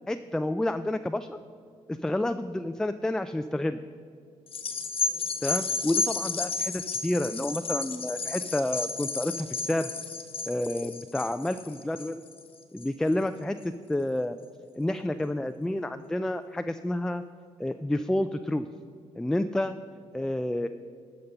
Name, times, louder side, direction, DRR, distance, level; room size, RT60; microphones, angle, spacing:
voice 1, 0.1-1.4 1.9-3.8 5.4-9.9 10.5-12.2 12.7-14.4 14.8-17.2 17.6-18.6 19.2-19.8 20.1-20.7, left 1 dB, 5° left, 9 dB, 0.3 m, -29 dB
sound 1, 4.5-13.1 13.6-13.7, left 3 dB, 50° left, 1.1 m, -32 dB
12.0 x 5.3 x 5.8 m, 2.3 s
cardioid pair, 80°, 12 cm